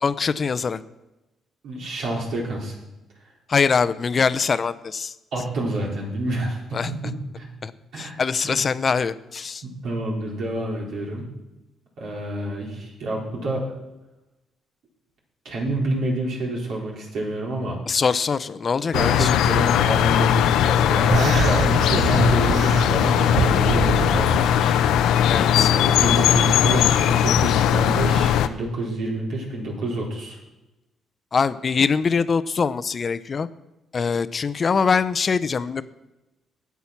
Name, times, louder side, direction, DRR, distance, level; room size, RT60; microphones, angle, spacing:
voice 1, 0.0-0.8 3.5-5.1 6.7-6.9 7.6-7.7 8.0-9.6 17.9-19.3 25.3-25.7 31.3-33.5 33.9-35.8, left 5 dB, 40° left, 14 dB, 0.6 m, -23 dB
voice 2, 1.6-2.8 5.3-7.4 7.9-8.2 8.4-8.6 9.8-11.2 12.0-13.6 15.4-17.8 18.9-25.3 25.7-30.4, right 2 dB, 75° right, -3 dB, 4.1 m, -28 dB
sound 1, 18.9-28.5, left 9 dB, 85° left, 0.6 m, -19 dB
sound 2, 21.1-24.5, right 8 dB, 55° right, 0.4 m, -26 dB
11.5 x 8.3 x 5.9 m, 1.0 s
cardioid pair, 90°, 0 cm